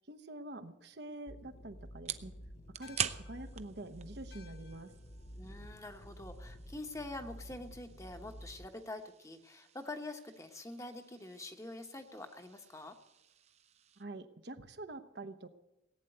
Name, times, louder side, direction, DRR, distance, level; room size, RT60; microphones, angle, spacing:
voice 1, 0.0-2.3 2.8-4.9 14.0-15.5, right 2 dB, 55° right, 8 dB, 1.0 m, -46 dB
sound 1, 0.8-14.0, right 8 dB, 35° right, 0.6 m, -47 dB
sound 2, 1.3-8.7, equal, 40° left, 0.8 m, -51 dB
sound 3, 2.8-7.5, left 7 dB, 55° left, 1.4 m, -64 dB
voice 2, 5.4-13.0, left 2 dB, 15° left, 6 dB, 1.1 m, -46 dB
18.0 x 9.2 x 7.9 m, 0.97 s
head